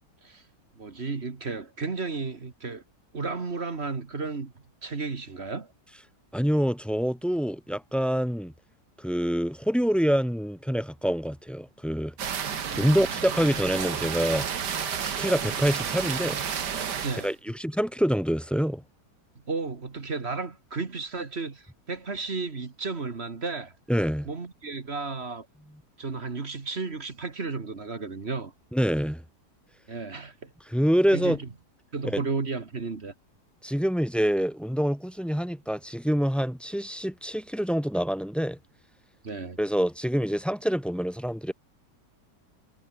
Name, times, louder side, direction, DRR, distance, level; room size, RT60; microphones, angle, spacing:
voice 1, 0.8-2.8 3.1-4.5 4.8-5.7 12.6-13.1 17.0-17.3 19.5-23.7 24.3-25.5 26.0-28.5 29.9-30.5 31.1-31.5 31.9-33.1 39.2-39.6, right 4 dB, 40° right, 2.0 m, -33 dB
voice 2, 6.3-8.5 9.0-12.1 12.7-14.5 15.1-16.4 17.2-18.8 23.9-24.3 28.7-29.2 30.7-31.4 32.0-32.2 33.6-38.6 39.6-41.5, equal, ahead, 2.6 m, -26 dB
sound 1, 12.2-17.3, right 7 dB, 80° right, 2.2 m, -31 dB
omnidirectional pair, 1.8 m